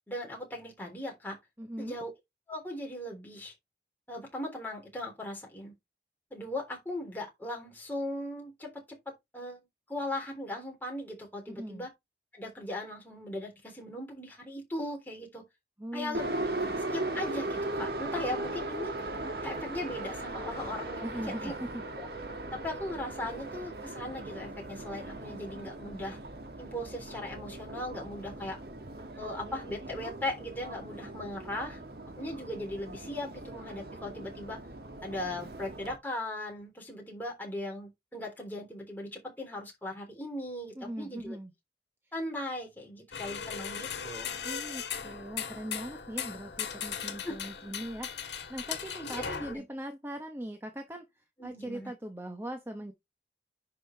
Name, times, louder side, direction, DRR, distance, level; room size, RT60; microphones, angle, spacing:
voice 1, 0.1-1.4 1.8-2.1 2.5-3.5 4.1-5.7 6.3-9.6 9.9-11.9 12.3-15.4 15.9-16.5 16.9-19.1 19.4-21.1 21.4-21.5 22.0-22.1 22.5-26.2 26.6-28.6 29.2-31.8 32.2-34.6 35.0-41.4 42.1-44.4 47.2-47.3 49.0-49.6 51.4-51.9, left 1 dB, 10° left, 3.5 m, -38 dB
voice 2, 1.6-2.0 11.5-11.9 15.8-16.8 21.0-21.8 40.8-41.5 44.4-52.9, right 1 dB, 15° right, 0.9 m, -40 dB
Subway metro underground, 16.1-36.0, right 2 dB, 65° right, 1.5 m, -38 dB
sound 1, 43.1-49.5, left 7 dB, 85° left, 1.6 m, -38 dB
10.5 x 5.2 x 3.3 m
head